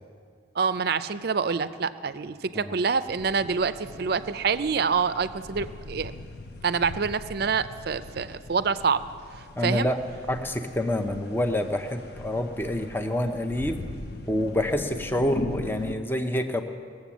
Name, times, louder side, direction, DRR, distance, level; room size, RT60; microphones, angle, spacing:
voice 1, 0.6-6.1 6.6-9.0 9.6-9.9, right 5 dB, 55° right, 13 dB, 0.5 m, -26 dB
sound 1, 3.1-15.9, left 2 dB, 55° left, 0.7 m, -40 dB
voice 2, 9.6-10.0 10.3-13.8 14.3-16.6, left 1 dB, 10° left, 6 dB, 0.6 m, -27 dB
19.5 x 7.7 x 7.2 m, 2.2 s
head